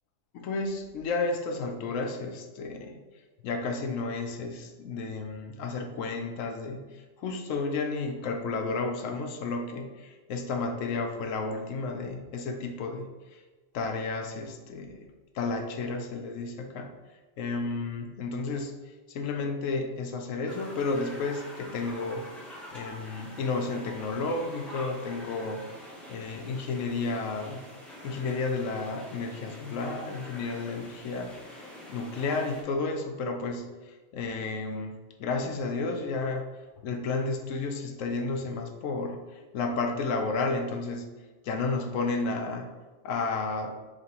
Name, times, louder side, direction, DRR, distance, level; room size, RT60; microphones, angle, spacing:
voice 1, 0.3-3.0 3.4-13.4 13.7-15.1 15.3-16.9 17.4-18.7 19.1-22.3 22.7-25.6 26.1-27.6 28.0-36.5 36.8-41.1 41.4-42.7 43.0-43.7, left 3 dB, 80° left, 4 dB, 1.0 m, -32 dB
sound 1, 20.5-32.6, left 1 dB, ahead, 0.6 m, -45 dB
5.1 x 3.3 x 2.8 m, 1.3 s
omnidirectional pair, 1.3 m